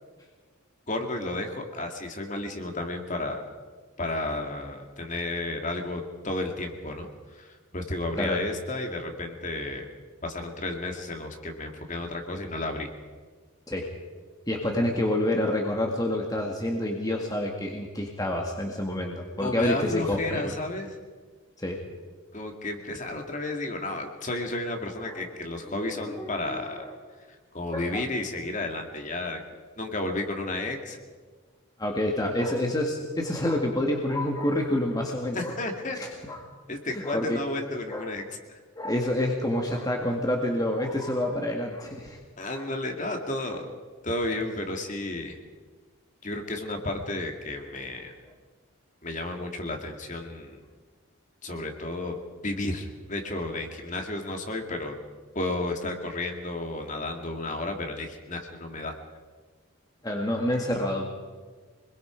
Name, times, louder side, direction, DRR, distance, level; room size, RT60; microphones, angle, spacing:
voice 1, 0.9-3.4 4.0-9.9 10.2-12.9 19.4-20.9 22.3-26.9 27.3-29.4 29.8-31.0 35.3-36.0 36.7-38.4 42.4-43.7 44.0-45.4 46.2-48.1 49.0-50.6 51.4-52.2 52.4-55.0 55.3-58.9, left 2 dB, 35° left, 4 dB, 2.3 m, -32 dB
voice 2, 14.5-20.6 21.6-21.8 25.1-25.3 26.1-26.9 27.7-28.0 31.8-35.6 35.9-36.4 36.9-37.4 37.9-38.1 38.8-42.2 42.5-42.7 60.0-61.1, left 1 dB, 15° left, 1 dB, 1.9 m, -28 dB
26.5 x 21.0 x 5.2 m, 1.5 s
head